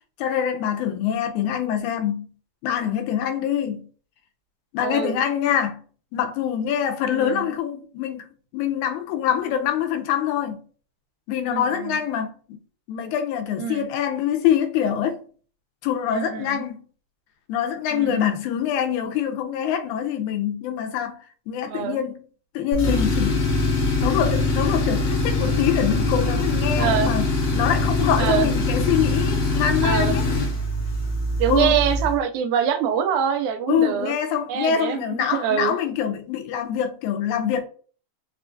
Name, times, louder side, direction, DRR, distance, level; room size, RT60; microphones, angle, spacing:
voice 1, 0.2-2.3 2.6-3.8 4.7-5.8 6.1-10.6 11.3-12.6 12.9-15.2 15.8-16.9 17.5-21.2 21.5-22.2 22.5-23.4 24.0-27.3 27.5-30.3 31.5-31.8 33.7-37.7, left 9 dB, 80° left, 2.0 m, -24 dB
voice 2, 4.8-5.2 7.1-7.5 11.5-12.0 13.6-13.9 16.1-16.6 17.9-18.3 21.7-22.0 26.8-27.1 28.2-28.5 29.8-30.2 31.4-34.1 34.5-35.8, right 8 dB, 85° right, 2.0 m, -25 dB
Tools, 22.7-32.2, left 2 dB, 65° left, 1.8 m, -23 dB
4.8 x 2.3 x 2.6 m
omnidirectional pair, 3.5 m